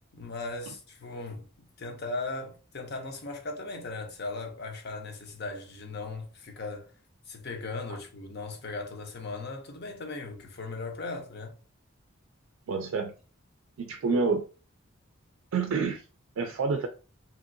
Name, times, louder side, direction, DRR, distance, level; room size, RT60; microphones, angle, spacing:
voice 1, 0.1-6.9 7.3-11.6, left 3 dB, 55° left, 0.6 m, -38 dB
voice 2, 12.7-13.1 13.8-14.4 15.5-16.0 16.4-16.9, right 4 dB, 75° right, 0.4 m, -28 dB
2.8 x 2.7 x 2.6 m
head